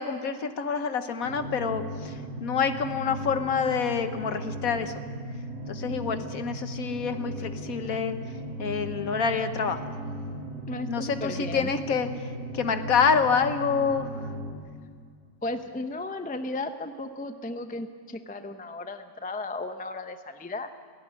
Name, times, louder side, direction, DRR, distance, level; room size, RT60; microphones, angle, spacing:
voice 1, 0.0-2.1 2.4-4.9 5.7-8.2 8.6-9.8 10.9-12.1 12.5-14.1, left 6 dB, 55° left, 9 dB, 1.4 m, -27 dB
sound 1, 1.2-14.5, right 1 dB, 85° right, 2.7 m, -37 dB
voice 2, 10.7-11.7 15.4-20.7, left 2 dB, 10° left, 8 dB, 0.3 m, -35 dB
17.0 x 16.5 x 9.8 m, 2.1 s
omnidirectional pair, 1.9 m